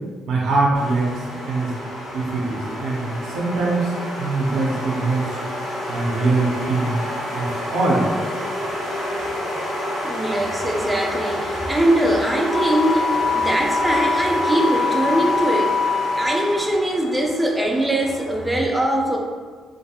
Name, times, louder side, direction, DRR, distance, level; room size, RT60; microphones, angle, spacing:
voice 1, 0.3-1.7 2.1-5.3 5.9-6.9 7.3-8.1, right 3 dB, 75° right, -3 dB, 0.5 m, -22 dB
sound 1, 0.7-18.5, left 1 dB, 85° left, 0.7 m, -29 dB
voice 2, 10.0-15.8 16.2-19.2, right 1 dB, 10° right, -1 dB, 0.4 m, -21 dB
Wind instrument woodwind instrument, 12.5-16.6, left 4 dB, 55° left, 1.0 m, -23 dB
2.8 x 2.5 x 2.3 m, 1.5 s
cardioid pair, 90°, 0 cm